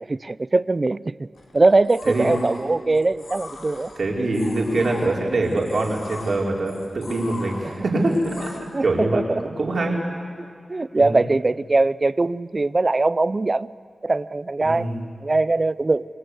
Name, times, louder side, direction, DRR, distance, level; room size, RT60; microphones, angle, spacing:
voice 1, 0.1-1.3 1.5-3.9 7.6-7.7 8.7-9.5 10.4-13.7 14.0-14.9 15.2-16.1, right 2 dB, 35° right, 18 dB, 0.6 m, -21 dB
sound 1, 1.4-8.6, left 3 dB, 85° left, 4.6 m, -41 dB
voice 2, 4.0-8.6 8.8-9.2 9.6-10.0 11.0-11.2 14.6-15.0, right 2 dB, 65° right, -1 dB, 5.1 m, -23 dB
29.5 x 24.0 x 8.2 m, 2.3 s
wide cardioid pair, 95°, 0 cm